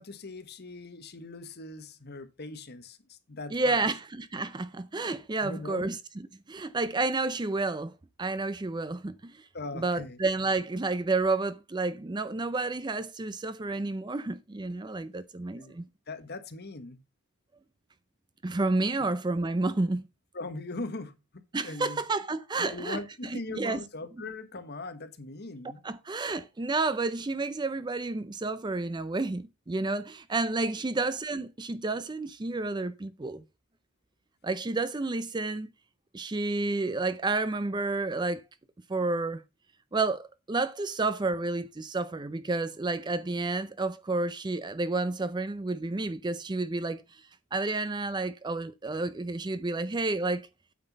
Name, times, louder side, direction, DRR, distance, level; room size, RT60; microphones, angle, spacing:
voice 1, 0.0-3.9 5.4-5.9 9.5-10.2 15.5-15.7 16.1-17.0 19.0-19.1 20.3-22.0 22.6-25.8, left 2 dB, 45° left, 1.3 m, -40 dB
voice 2, 3.5-6.0 6.5-9.5 9.7-15.9 18.4-20.1 21.5-23.8 25.8-33.4 34.4-35.7 36.1-38.4 38.9-39.4 39.9-47.0 47.5-50.5, right 3 dB, 20° right, 0.4 m, -30 dB
8.9 x 5.9 x 5.2 m
head